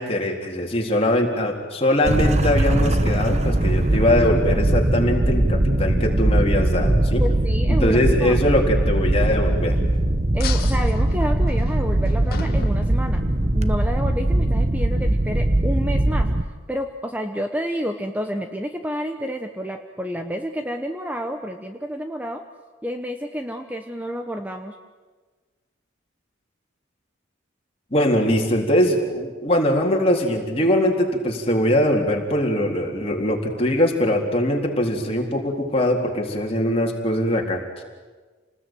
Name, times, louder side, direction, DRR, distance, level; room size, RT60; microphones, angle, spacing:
voice 1, 0.0-7.2 7.7-9.7 27.9-37.8, left 1 dB, 30° left, 1 dB, 3.9 m, -22 dB
sound 1, 2.0-16.4, right 1 dB, 35° right, 1.1 m, -20 dB
voice 2, 7.2-8.4 10.3-13.2 13.5-16.3 16.7-22.4 22.8-24.7, equal, 10° right, 5 dB, 1.1 m, -29 dB
sound 2, 10.4-13.6, left 4 dB, 50° left, 2.3 m, -35 dB
28.5 x 20.0 x 9.2 m, 1.4 s
head